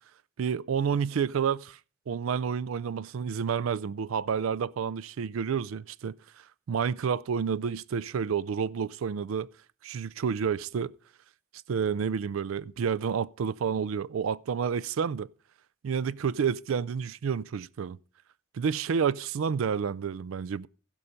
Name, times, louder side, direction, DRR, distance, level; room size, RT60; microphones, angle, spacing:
voice 1, 0.4-1.8 2.1-6.2 6.7-9.5 9.8-10.9 11.7-15.3 15.8-18.0 18.5-20.7, right 6 dB, 90° right, 0.4 m, -29 dB
15.5 x 5.6 x 5.0 m
head